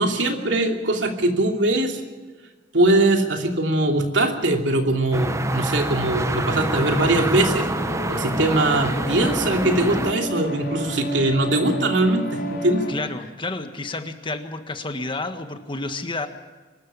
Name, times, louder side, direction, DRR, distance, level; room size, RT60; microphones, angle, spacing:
voice 1, 0.0-2.0 2.7-7.7 8.1-12.9, right 2 dB, 85° right, 3 dB, 2.9 m, -21 dB
sound 1, 5.1-10.1, right 2 dB, 15° right, 0.9 m, -27 dB
sound 2, 5.3-12.9, equal, 60° left, 4.5 m, -31 dB
voice 2, 12.9-16.3, left 2 dB, 30° left, 7 dB, 1.6 m, -30 dB
24.5 x 13.5 x 8.5 m, 1.3 s
head